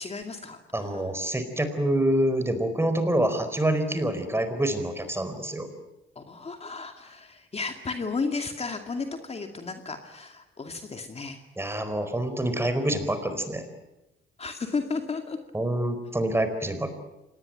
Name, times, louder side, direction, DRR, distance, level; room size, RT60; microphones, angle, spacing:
voice 1, 0.0-1.0 6.2-11.4 14.4-15.4, left 4 dB, 30° left, 5 dB, 2.3 m, -33 dB
voice 2, 0.7-5.7 11.6-13.7 15.5-16.9, right 1 dB, 10° right, 9 dB, 4.4 m, -26 dB
26.0 x 19.5 x 9.0 m, 0.97 s
cardioid pair, 90°, 20 cm